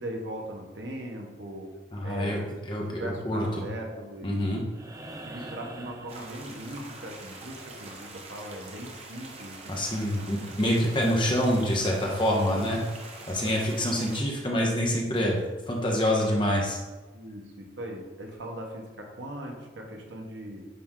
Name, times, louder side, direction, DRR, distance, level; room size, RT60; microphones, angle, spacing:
voice 1, 0.0-1.7 2.0-2.4 2.9-4.3 5.2-10.2 13.2-13.6 13.9-14.0 17.1-20.7, right 1 dB, 75° right, 1 dB, 1.1 m, -39 dB
voice 2, 1.9-3.4 4.2-4.6 9.7-12.8 13.3-15.4 15.7-16.8, equal, 25° left, -1 dB, 1.0 m, -26 dB
sound 1, 4.7-7.0 8.9-9.0, right 1 dB, 20° right, 0.4 m, -44 dB
sound 2, 6.1-14.2, right 3 dB, 35° right, 0.8 m, -45 dB
9.2 x 3.3 x 3.8 m, 1.2 s
head